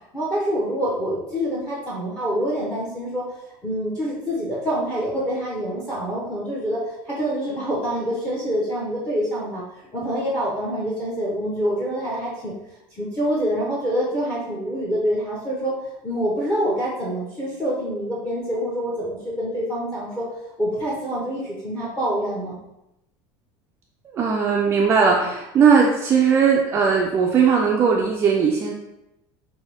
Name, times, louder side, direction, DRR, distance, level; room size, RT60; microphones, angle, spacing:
voice 1, 0.1-3.2 3.6-9.6 9.9-12.5 12.9-15.8 16.0-20.3 20.6-22.6, equal, 10° left, -6 dB, 0.8 m, -26 dB
voice 2, 24.0-28.7, right 6 dB, 25° right, -1 dB, 0.4 m, -18 dB
5.6 x 2.6 x 3.3 m, 0.89 s
cardioid pair, 170°, 10 cm